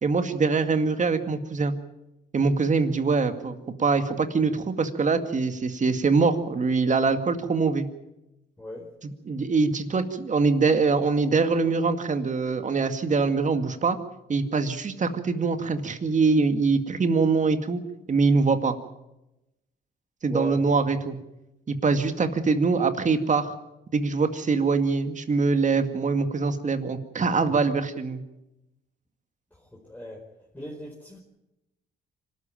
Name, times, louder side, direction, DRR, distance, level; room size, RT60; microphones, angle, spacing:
voice 1, 0.0-1.7 2.3-7.9 9.3-14.0 14.3-17.8 18.1-18.8 20.2-21.2 21.7-23.5 23.9-28.2, right 4 dB, 40° right, 8 dB, 2.1 m, -23 dB
voice 2, 8.6-8.9 20.3-20.7 29.5-30.2 30.5-31.2, equal, 10° left, -2 dB, 4.7 m, -37 dB
25.5 x 13.0 x 9.0 m, 0.92 s
cardioid pair, 90°, 20 cm